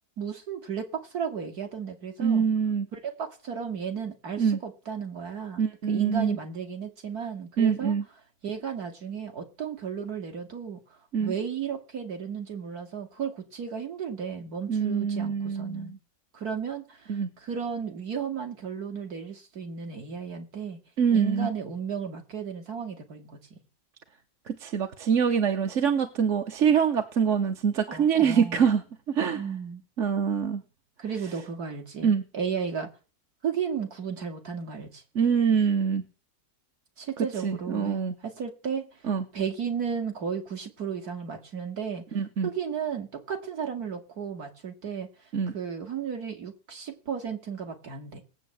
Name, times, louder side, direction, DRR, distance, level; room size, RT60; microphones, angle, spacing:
voice 1, 0.2-2.4 2.9-7.9 8.4-10.8 11.2-15.9 16.3-20.8 21.1-23.6 27.9-28.7 29.3-29.8 31.0-32.9 33.4-35.0 37.0-38.9 39.3-42.0 42.4-45.1 45.5-48.2, right 7 dB, 75° right, 2.9 m, -34 dB
voice 2, 2.2-2.9 4.4-4.6 5.6-6.4 7.6-8.0 11.1-11.3 14.7-16.0 17.1-17.3 21.0-21.5 24.5-29.4 30.0-30.6 32.0-32.2 35.1-36.0 37.2-38.1 39.1-39.2 42.1-42.5 45.3-45.5, right 7 dB, 55° right, 1.3 m, -25 dB
18.5 x 8.5 x 7.9 m
omnidirectional pair, 1.6 m